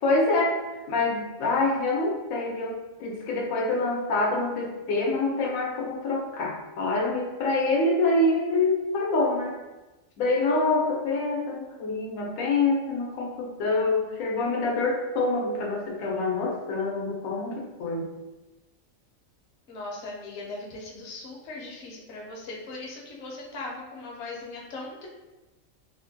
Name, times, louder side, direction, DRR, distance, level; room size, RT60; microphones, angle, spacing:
voice 1, 0.0-0.6 0.9-9.6 10.2-18.1, left 2 dB, 90° left, -1 dB, 1.0 m, -26 dB
voice 2, 19.7-25.1, left 2 dB, 65° left, -2 dB, 0.9 m, -39 dB
3.1 x 2.1 x 2.6 m, 1.1 s
omnidirectional pair, 1.4 m